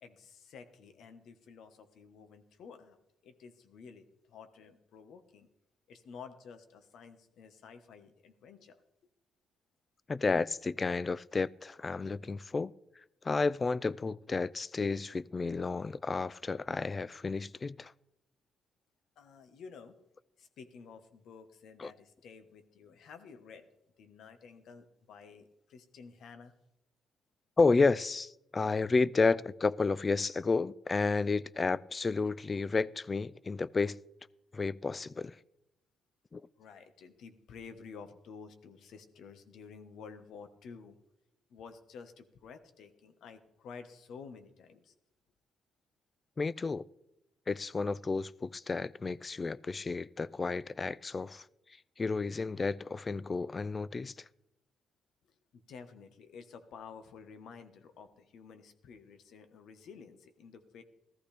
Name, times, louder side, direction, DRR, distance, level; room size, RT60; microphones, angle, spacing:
voice 1, 0.0-5.5 5.9-8.8 19.2-19.9 20.4-23.6 24.0-26.5 36.6-41.0 41.5-44.9 55.5-60.8, left 5 dB, 75° left, 1.3 m, -51 dB
voice 2, 10.1-12.7 13.2-17.9 21.8-21.9 27.6-34.0 34.5-35.4 36.3-36.4 46.4-46.9 47.5-51.5 52.0-54.3, left 4 dB, 30° left, 0.3 m, -31 dB
15.0 x 13.5 x 3.4 m
cardioid pair, 90°, 0 cm